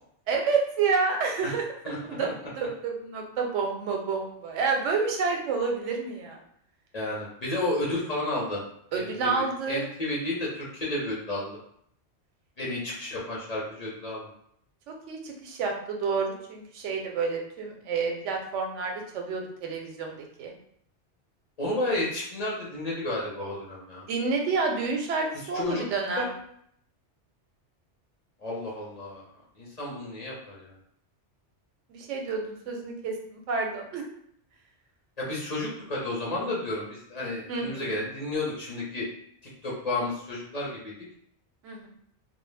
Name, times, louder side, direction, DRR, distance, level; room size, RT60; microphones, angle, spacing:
voice 1, 0.3-1.6 2.1-6.4 8.9-9.9 14.9-20.5 24.1-26.3 31.9-34.0 37.5-37.9 41.6-41.9, right 4 dB, 85° right, 1 dB, 0.9 m, -29 dB
voice 2, 1.8-2.3 6.9-8.6 8.9-11.6 12.6-14.3 21.6-24.0 25.5-25.8 26.2-26.3 28.4-29.2 29.6-30.7 35.2-39.1 39.6-40.9, left 2 dB, 45° left, -5 dB, 0.6 m, -32 dB
2.1 x 2.0 x 3.1 m, 0.69 s
omnidirectional pair, 1.2 m